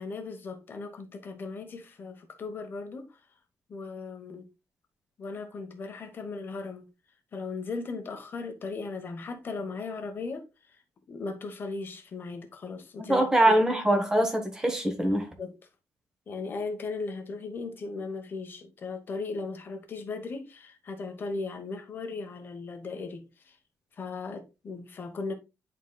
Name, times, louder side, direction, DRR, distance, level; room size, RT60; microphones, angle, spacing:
voice 1, 0.0-3.2 3.7-4.5 5.2-6.9 7.3-10.4 11.1-13.6 15.4-15.5 16.3-23.6 24.0-25.3, left 4 dB, 35° left, 1.1 m, -37 dB
voice 2, 13.1-15.3, right 1 dB, 10° right, 1.2 m, -23 dB
10.5 x 4.0 x 2.3 m
cardioid pair, 170°, 6 cm